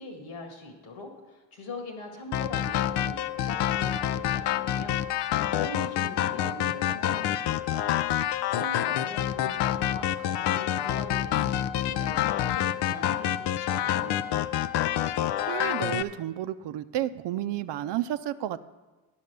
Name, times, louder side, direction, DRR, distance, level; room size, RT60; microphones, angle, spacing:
voice 1, 0.0-7.9 8.5-14.6, left 2 dB, 75° left, 3 dB, 1.9 m, -42 dB
sound 1, 2.3-16.0, left 11 dB, 60° left, 0.6 m, -27 dB
voice 2, 15.5-18.7, right 12 dB, 60° right, 13 dB, 0.6 m, -31 dB
10.5 x 5.6 x 6.7 m, 1.2 s
hypercardioid pair, 50°, 46 cm